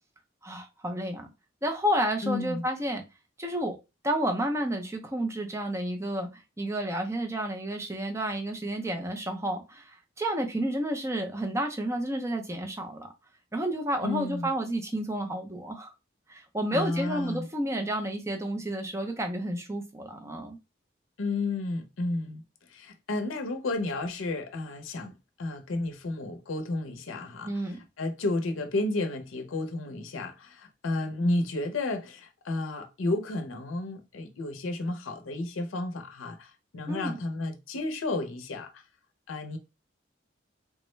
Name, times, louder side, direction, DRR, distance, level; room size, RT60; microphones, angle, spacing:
voice 1, 0.4-1.3 1.6-3.0 3.4-3.8 4.0-13.1 13.5-15.9 16.3-20.6 27.4-27.8 36.9-37.2, right 1 dB, 15° right, 0.5 m, -31 dB
voice 2, 2.2-2.6 14.0-14.5 16.7-17.5 21.2-22.4 22.7-25.1 25.4-27.5 28.0-38.8 39.3-39.6, left 2 dB, 85° left, 0.5 m, -32 dB
3.4 x 2.1 x 3.0 m
head